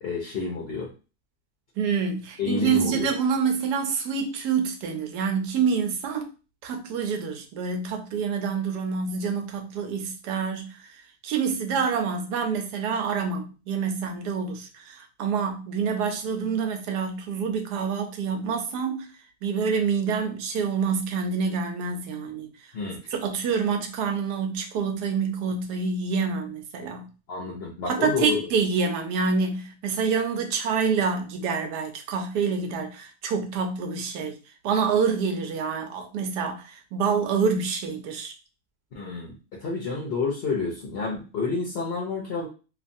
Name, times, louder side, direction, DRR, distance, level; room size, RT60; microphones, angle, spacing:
voice 1, 0.0-0.9 2.4-3.1 22.7-23.1 27.3-28.4 38.9-42.5, left 4 dB, 55° left, 0.7 m, -29 dB
voice 2, 1.8-6.3 6.6-10.9 11.2-19.1 19.4-22.5 23.1-27.1 27.9-34.3 34.6-38.3, right 5 dB, 85° right, 1.2 m, -27 dB
3.1 x 2.4 x 2.6 m
omnidirectional pair, 1.7 m